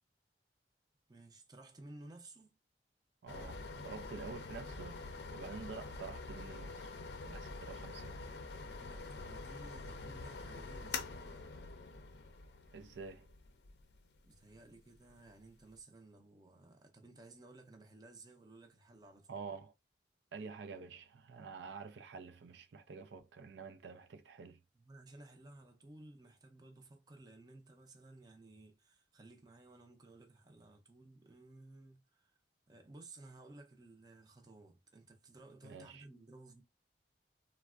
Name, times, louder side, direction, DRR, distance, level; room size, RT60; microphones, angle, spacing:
voice 1, 1.1-2.5 8.7-11.5 14.2-19.4 24.7-32.4 32.7-36.6, right 2 dB, 25° right, 0.5 m, -56 dB
voice 2, 3.2-6.9 7.2-8.2 12.7-13.3 19.3-19.7 20.3-24.6 35.6-36.0, right 4 dB, 85° right, 0.4 m, -48 dB
sound 1, 3.3-15.7, left 3 dB, 70° left, 0.5 m, -46 dB
3.3 x 2.1 x 2.3 m
head